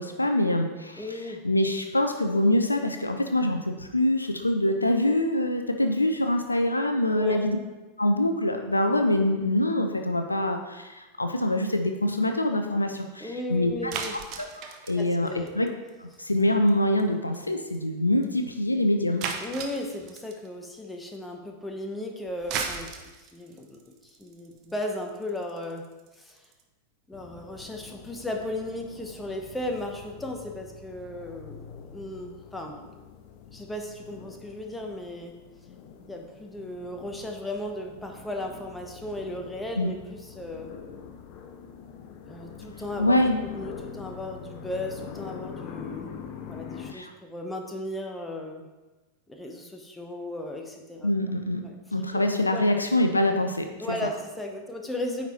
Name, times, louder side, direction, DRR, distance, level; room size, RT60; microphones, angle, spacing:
voice 1, 0.0-1.0 1.4-7.6 8.0-13.9 14.6-15.3 15.5-15.7 16.0-19.2 39.8-39.9 43.0-43.4 46.9-47.1 51.0-51.6 51.9-53.7, left 1 dB, 85° left, 5 dB, 0.6 m, -24 dB
voice 2, 1.0-1.4 7.1-7.6 13.2-14.2 15.0-15.5 16.2-16.3 19.4-25.8 26.2-26.5 27.1-32.8 33.5-35.4 36.1-40.7 42.3-43.2 43.5-46.2 46.5-48.7 49.3-51.1 51.6-51.8 52.5-52.7 53.8-55.3, left 1 dB, 10° left, 2 dB, 1.0 m, -36 dB
sound 1, 13.9-16.1 16.4-16.7 17.0-17.1 17.3-17.4 17.7-17.8 18.2-18.3 19.2-20.5 22.3-26.6, right 6 dB, 40° right, 0.8 m, -36 dB
sound 2, 27.1-46.9, left 7 dB, 45° left, 0.7 m, -44 dB
9.2 x 4.2 x 4.4 m, 1.2 s
figure-of-eight pair, 90°, 0 cm